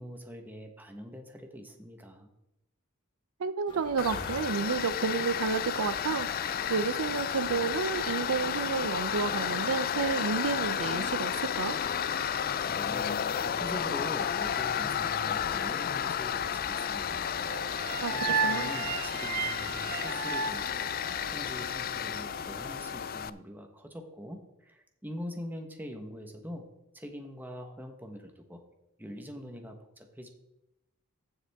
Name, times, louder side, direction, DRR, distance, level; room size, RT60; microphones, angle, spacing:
voice 1, 0.0-2.3 12.7-13.1 13.4-17.3 18.1-21.0 21.3-26.6 26.9-28.6 29.0-30.3, equal, 10° right, 4 dB, 1.2 m, -43 dB
voice 2, 3.4-11.8 18.0-18.1 18.4-18.7, right 5 dB, 85° right, 14 dB, 0.5 m, -31 dB
sound 1, 3.7-22.8, left 1 dB, 20° left, 1.4 m, -47 dB
Tools, 4.0-23.3, left 8 dB, 45° left, 0.3 m, -32 dB
sound 2, 17.4-21.6, right 5 dB, 40° right, 0.7 m, -33 dB
14.5 x 7.2 x 3.6 m, 0.89 s
head